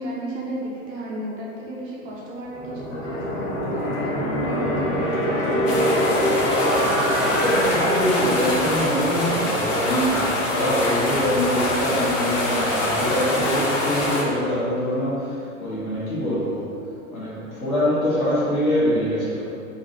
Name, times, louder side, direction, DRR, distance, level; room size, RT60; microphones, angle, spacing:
voice 1, 0.0-5.9, right 1 dB, 20° right, -5 dB, 0.4 m, -34 dB
sound 1, 2.5-13.2, equal, 55° left, 1.2 m, -26 dB
sound 2, 5.7-14.2, left 1 dB, 30° left, 0.6 m, -24 dB
voice 2, 7.2-16.6 17.1-19.5, equal, 80° left, -10 dB, 1.2 m, -24 dB
3.0 x 2.6 x 4.0 m, 2.5 s
figure-of-eight pair, 95°, 42 cm